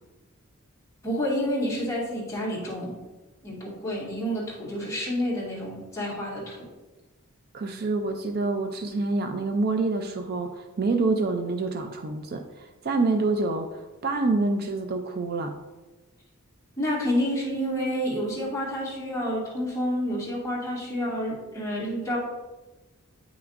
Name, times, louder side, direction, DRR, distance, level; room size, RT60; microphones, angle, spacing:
voice 1, 1.0-3.0 3.4-6.7 16.8-22.2, equal, 15° left, -7 dB, 2.1 m, -29 dB
voice 2, 7.5-15.6, right 3 dB, 45° right, 6 dB, 0.4 m, -27 dB
9.0 x 5.9 x 2.5 m, 1.2 s
head